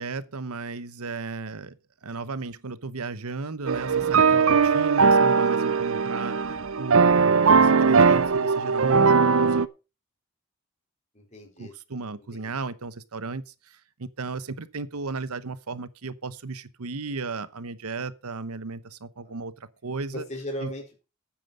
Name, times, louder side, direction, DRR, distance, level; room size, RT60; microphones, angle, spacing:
voice 1, 0.0-6.4 6.7-9.6 11.6-20.2 20.6-20.7, right 4 dB, 90° right, 1.0 m, -35 dB
sound 1, 3.7-9.7, right 5 dB, 65° right, 0.6 m, -20 dB
voice 2, 11.1-11.7 12.3-12.5 19.2-19.4 20.1-21.0, left 1 dB, 30° left, 4.1 m, -37 dB
9.1 x 9.1 x 5.5 m
head